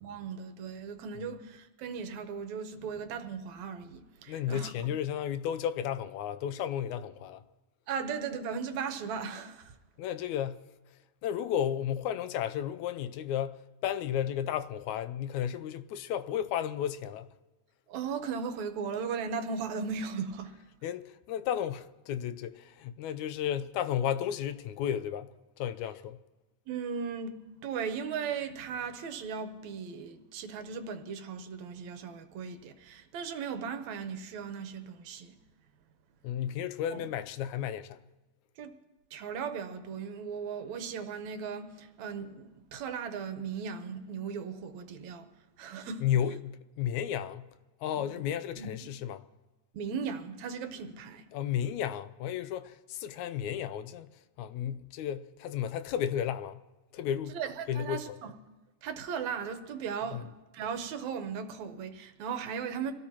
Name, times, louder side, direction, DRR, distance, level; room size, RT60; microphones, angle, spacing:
voice 1, 0.0-4.7 7.9-9.7 17.9-20.5 26.7-27.4 27.6-35.4 36.9-37.0 38.6-38.7 39.1-45.3 45.6-46.1 48.0-48.1 48.6-48.7 49.7-51.3 57.3-58.3 58.8-62.9, right 6 dB, 75° right, 2.2 m, -37 dB
voice 2, 4.3-7.4 10.0-10.6 11.2-17.3 20.8-25.3 25.6-26.2 36.2-38.0 46.0-47.5 47.8-49.2 51.3-54.1 54.4-56.6 56.9-57.4 57.7-58.2 60.1-60.2, left 10 dB, 85° left, 2.0 m, -33 dB
25.0 x 17.0 x 2.9 m
omnidirectional pair, 3.3 m